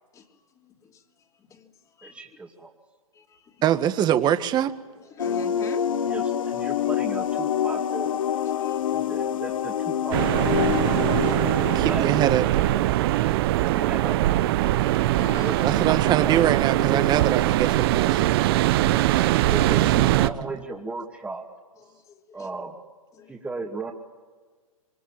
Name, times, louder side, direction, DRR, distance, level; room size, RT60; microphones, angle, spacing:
voice 1, 0.1-2.4 3.1-3.6 4.9-6.1 8.4-9.3 10.8-11.8 12.9-13.5 14.7-15.8 18.3-18.6 21.8-22.5 23.1-23.4, left 6 dB, 20° left, 3.0 m, -46 dB
voice 2, 2.0-2.7 6.1-8.2 8.9-10.8 11.8-12.0 13.6-14.2 15.4-15.6 16.2-16.4 16.8-17.1 19.4-21.4 22.3-22.8 23.3-23.9, right 3 dB, 10° right, 2.5 m, -35 dB
voice 3, 3.6-4.7 11.8-12.5 15.6-18.5 19.7-20.1, right 11 dB, 25° right, 1.6 m, -24 dB
sound 1, 5.2-13.5, left 9 dB, 70° left, 1.2 m, -27 dB
sound 2, 10.1-20.3, right 15 dB, 45° right, 1.0 m, -22 dB
sound 3, 10.3-10.4 10.6-16.6, right 7 dB, 75° right, 6.6 m, -51 dB
27.0 x 24.0 x 9.2 m
hypercardioid pair, 125°, 18 cm